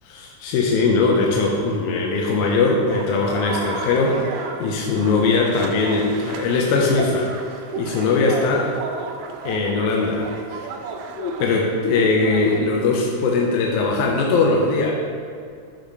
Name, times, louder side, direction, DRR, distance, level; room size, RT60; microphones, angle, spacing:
voice 1, 0.0-7.3 7.8-8.7 9.5-10.7 11.2-14.9, left 3 dB, 75° left, -1 dB, 2.0 m, -20 dB
sound 1, 2.9-12.6, right 4 dB, 85° right, 1.6 m, -33 dB
11.5 x 4.0 x 3.3 m, 2.4 s
omnidirectional pair, 3.8 m